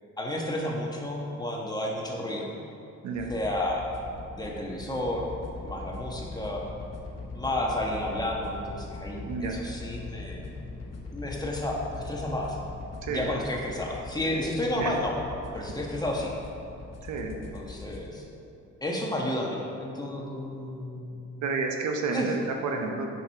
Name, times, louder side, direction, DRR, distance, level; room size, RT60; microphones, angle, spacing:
voice 1, 0.2-2.5 3.3-3.9 4.3-5.3 5.6-6.6 7.3-10.5 11.1-12.6 13.1-15.1 15.5-16.3 17.5-18.2 18.8-21.4 22.1-22.3, left 1 dB, 15° left, -2 dB, 1.3 m, -31 dB
sound 1, 3.1-18.1, left 3 dB, 55° left, 1.2 m, -41 dB
voice 2, 17.0-17.4 21.4-23.1, right 4 dB, 70° right, 3 dB, 0.9 m, -30 dB
7.0 x 6.2 x 4.7 m, 2.7 s
cardioid pair, 90°, 30 cm